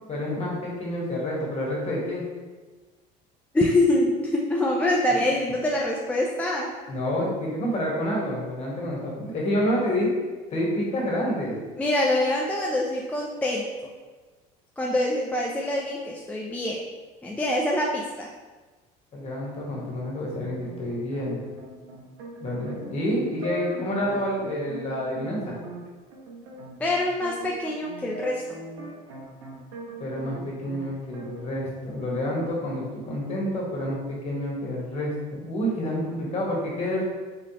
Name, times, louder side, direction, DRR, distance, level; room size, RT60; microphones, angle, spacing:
voice 1, 0.1-2.2 5.1-5.2 6.9-10.1 10.5-11.6 19.1-21.4 22.4-25.5 30.0-37.0, equal, 35° left, -3 dB, 1.3 m, -28 dB
voice 2, 3.5-6.7 11.8-13.6 14.8-16.9 17.2-18.3 26.8-28.4, left 1 dB, 10° left, -3 dB, 0.4 m, -25 dB
sound 1, 20.3-30.8 31.1-32.5, right 2 dB, 90° right, 0.8 m, -40 dB
3.6 x 3.3 x 2.9 m, 1.3 s
cardioid pair, 110°, 19 cm